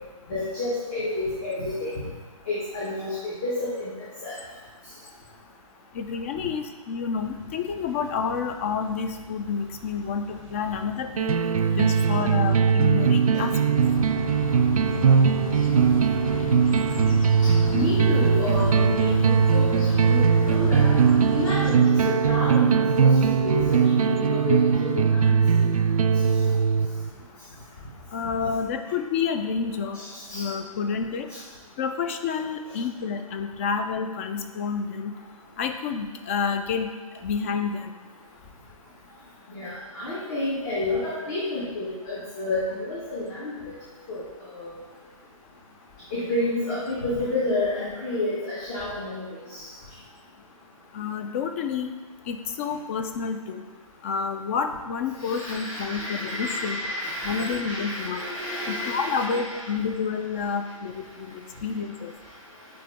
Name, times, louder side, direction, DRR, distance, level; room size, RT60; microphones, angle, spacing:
voice 1, 0.3-2.0 2.5-3.9 4.2-4.3 17.7-21.0 21.3-25.7 29.9-30.5 39.5-43.7 44.1-44.2 44.5-44.7 46.1-49.7 55.2-59.7, left 2 dB, 40° left, -9 dB, 1.8 m, -30 dB
voice 2, 5.9-11.4 11.7-13.5 28.1-30.0 30.3-31.3 31.8-35.2 35.6-36.9 37.2-37.9 50.9-51.9 52.3-53.6 54.0-56.8 57.2-58.2 58.7-62.1, left 6 dB, 25° left, 6 dB, 0.3 m, -29 dB
sound 1, 7.1-21.7, right 3 dB, 15° right, 0.7 m, -45 dB
sound 2, 11.2-27.1, right 6 dB, 80° right, 0.4 m, -20 dB
sound 3, 13.7-21.8, left 6 dB, 70° left, 0.6 m, -35 dB
8.9 x 3.0 x 3.5 m, 1.4 s
figure-of-eight pair, 135°, 18 cm